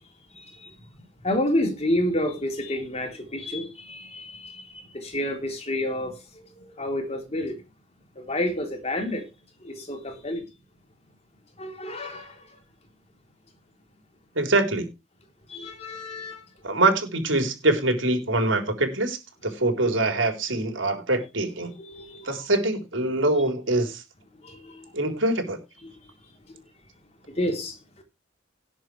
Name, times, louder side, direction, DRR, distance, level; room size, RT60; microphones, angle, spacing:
voice 1, 0.3-7.6 8.2-9.3 9.6-10.4 11.6-12.6 15.5-16.5 21.8-22.3 24.3-24.9 25.8-26.1 26.5-26.6 27.3-28.0, left 1 dB, 35° left, 3.5 m, -30 dB
voice 2, 14.4-14.9 16.6-19.2 19.4-21.7 22.2-24.0 24.9-25.6, right 2 dB, 85° right, 3.9 m, -24 dB
18.5 x 7.4 x 3.3 m
head